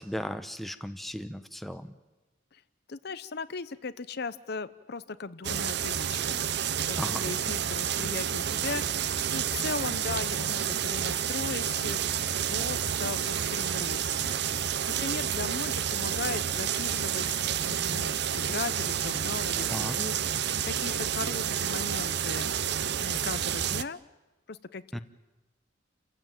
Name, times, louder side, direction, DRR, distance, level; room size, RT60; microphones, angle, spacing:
voice 1, 0.0-1.9 7.0-7.3 19.7-20.0 24.9-25.0, equal, ahead, 9 dB, 0.9 m, -36 dB
voice 2, 2.9-12.0 12.4-14.6 15.0-22.5 23.0-24.0 24.5-24.8, left 4 dB, 55° left, 14 dB, 0.8 m, -38 dB
sound 1, 5.4-23.8, right 9 dB, 60° right, 0.7 m, -30 dB
29.0 x 15.5 x 9.1 m, 1.1 s
head